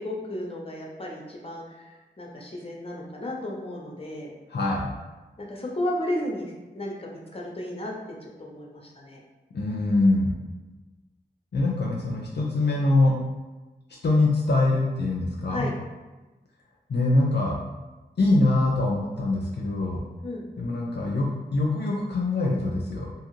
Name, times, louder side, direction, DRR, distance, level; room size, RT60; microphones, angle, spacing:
voice 1, 0.0-4.3 5.4-7.9 8.2-9.2 15.5-15.7 20.2-20.5, left 1 dB, 30° left, -1 dB, 0.8 m, -33 dB
voice 2, 4.5-4.9 9.5-10.3 11.5-13.2 14.0-15.7 16.9-17.6 18.2-20.0 20.6-23.1, left 2 dB, 65° left, -3 dB, 0.5 m, -23 dB
2.7 x 2.3 x 3.0 m, 1.2 s
cardioid pair, 40°, 19 cm